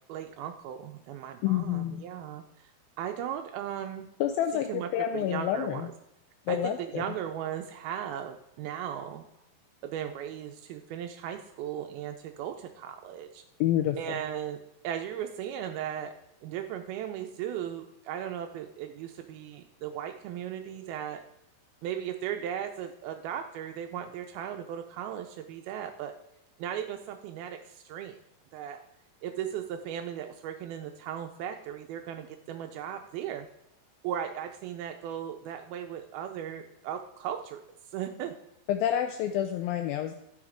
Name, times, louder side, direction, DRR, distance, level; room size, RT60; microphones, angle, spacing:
voice 1, 0.1-2.7 3.0-4.1 4.7-5.9 6.5-9.2 9.8-13.4 14.0-14.6 14.8-16.1 16.4-21.2 21.8-26.1 26.6-28.2 28.5-28.8 29.2-33.5 34.0-37.6 37.9-38.3, right 9 dB, 80° right, 6 dB, 2.3 m, -37 dB
voice 2, 1.4-2.0 4.2-5.9 6.5-7.0 13.6-14.2 38.7-40.2, left 11 dB, 85° left, 6 dB, 2.1 m, -28 dB
12.0 x 6.4 x 5.0 m, 0.80 s
omnidirectional pair, 4.8 m